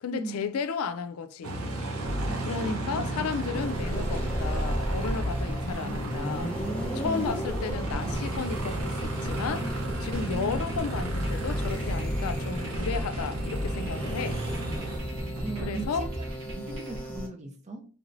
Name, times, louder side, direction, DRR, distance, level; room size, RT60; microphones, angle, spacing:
voice 1, 0.0-1.5 2.5-6.5 6.9-9.7 10.0-14.4 15.6-16.1, left 5 dB, 85° left, 0.4 m, -33 dB
Aircraft, 1.4-15.0, right 2 dB, 90° right, 0.8 m, -34 dB
sound 1, 2.1-17.0, equal, 65° right, 1.3 m, -36 dB
voice 2, 2.3-3.0 7.0-7.4 10.3-10.5 15.4-16.2 16.5-17.9, right 2 dB, 30° right, 0.5 m, -38 dB
sound 2, 3.5-17.3, equal, 10° left, 0.6 m, -35 dB
3.2 x 3.0 x 2.6 m
head